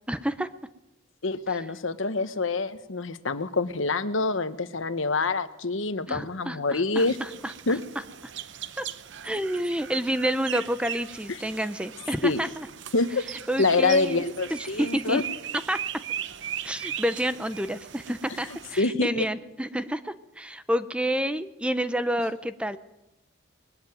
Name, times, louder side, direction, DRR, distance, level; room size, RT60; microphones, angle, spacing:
voice 1, 0.1-0.5 1.5-1.7 6.1-7.8 8.8-8.9 9.2-12.7 13.3-14.2 14.5-15.2 15.7-15.8 16.6-22.8, equal, 5° right, 12 dB, 0.6 m, -29 dB
voice 2, 1.2-7.2 7.7-7.8 12.2-12.4 12.9-13.2 13.6-15.2 18.8-19.2, left 3 dB, 70° left, 11 dB, 1.2 m, -26 dB
sound 1, 7.0-18.8, right 10 dB, 60° right, 0.8 m, -39 dB
21.0 x 13.5 x 9.2 m, 0.94 s
head